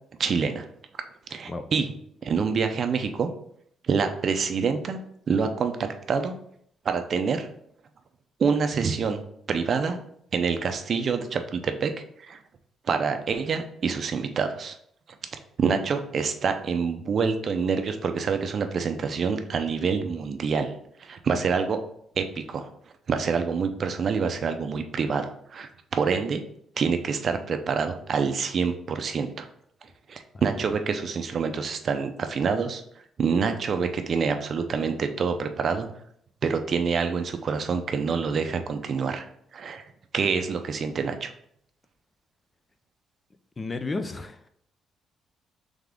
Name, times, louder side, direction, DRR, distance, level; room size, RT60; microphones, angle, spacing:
voice 1, 0.2-0.7 1.3-1.9 2.2-3.3 3.9-5.0 5.3-6.4 6.8-7.5 8.4-10.0 10.3-11.9 12.2-12.4 12.9-14.8 15.6-20.7 21.0-21.9 22.2-22.7 23.1-26.4 26.8-29.5 30.1-32.8 33.2-35.9 36.4-39.2 39.5-39.8 40.1-41.3, right 5 dB, 50° right, 7 dB, 0.5 m, -26 dB
voice 2, 43.6-44.5, left 3 dB, 30° left, 9 dB, 0.4 m, -32 dB
3.7 x 3.5 x 3.4 m, 0.69 s
cardioid pair, 90°, 0 cm